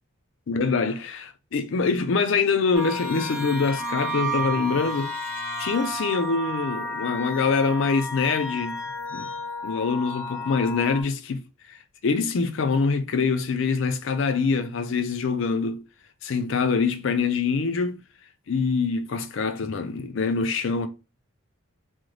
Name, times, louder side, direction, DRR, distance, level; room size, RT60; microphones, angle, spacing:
voice 1, 0.5-5.1 5.6-8.8 9.1-9.3 9.6-11.4 12.0-15.8 16.2-18.0 18.5-20.9, left 4 dB, 60° left, 0.4 m, -24 dB
sound 1, 2.7-11.0, equal, 35° right, 1.2 m, -32 dB
3.1 x 2.0 x 3.8 m
head